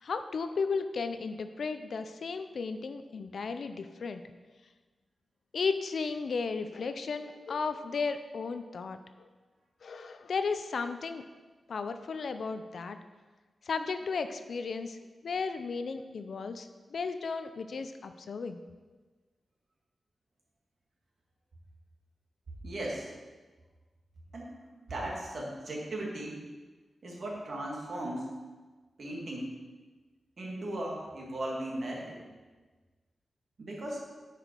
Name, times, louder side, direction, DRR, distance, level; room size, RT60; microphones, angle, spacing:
voice 1, 0.0-4.2 5.5-9.0 9.8-11.2 11.7-13.0 13.7-15.0 15.2-18.6, left 4 dB, 60° left, 9 dB, 0.5 m, -34 dB
voice 2, 22.6-23.1 24.3-24.6 24.9-26.4 27.0-28.3 29.0-29.5 30.4-32.2 33.6-34.0, right 1 dB, 50° right, -3 dB, 1.9 m, -37 dB
9.9 x 5.0 x 5.2 m, 1.3 s
wide cardioid pair, 175°, 0 cm